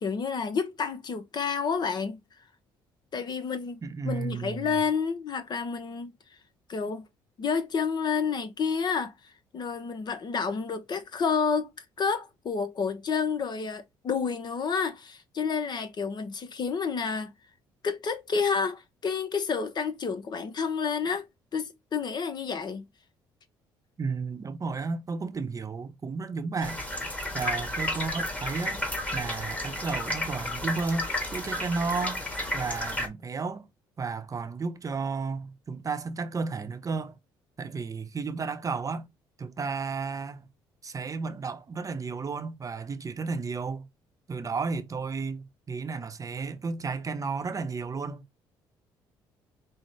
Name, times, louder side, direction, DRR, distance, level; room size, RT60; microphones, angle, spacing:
voice 1, 0.0-2.2 3.1-6.1 6.7-7.1 7.4-9.1 9.5-11.7 12.0-17.3 17.8-21.2 21.5-22.9, left 5 dB, 45° left, 0.7 m, -29 dB
voice 2, 3.8-4.8 24.0-26.8 27.3-28.8 29.1-32.2 32.5-33.7 34.0-37.2 37.6-39.1 39.4-40.5 40.8-43.9 44.3-48.2, right 4 dB, 35° right, 0.7 m, -33 dB
sound 1, 26.6-33.1, left 1 dB, 15° left, 1.5 m, -32 dB
5.2 x 2.1 x 3.2 m
supercardioid pair, 70°, 10 cm